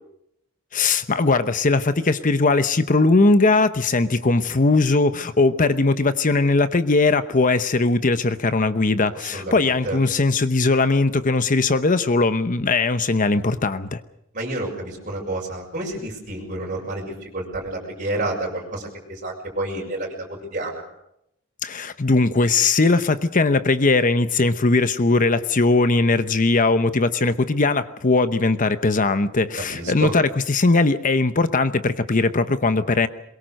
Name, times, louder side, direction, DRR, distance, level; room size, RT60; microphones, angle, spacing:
voice 1, 0.7-14.0 21.6-33.1, left 3 dB, 40° left, 11 dB, 0.9 m, -19 dB
voice 2, 9.2-10.0 14.3-20.9 29.7-30.1, right 1 dB, 40° right, -2 dB, 6.6 m, -30 dB
22.5 x 22.0 x 6.5 m, 0.79 s
head